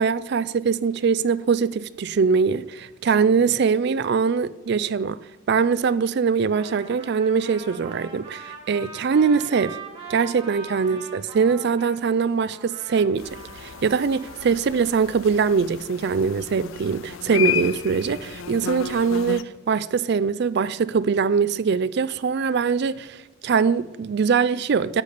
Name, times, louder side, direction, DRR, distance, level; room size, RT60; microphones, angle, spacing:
voice 1, 0.0-5.2 5.5-9.8 10.1-13.3 13.6-25.0, right 5 dB, 55° right, 0.4 m, -22 dB
Trumpet, 6.5-12.0 12.5-14.4, right 4 dB, 25° right, 1.8 m, -41 dB
sound 1, 13.2-19.4, left 9 dB, 75° left, 0.5 m, -33 dB
10.5 x 8.3 x 4.1 m
head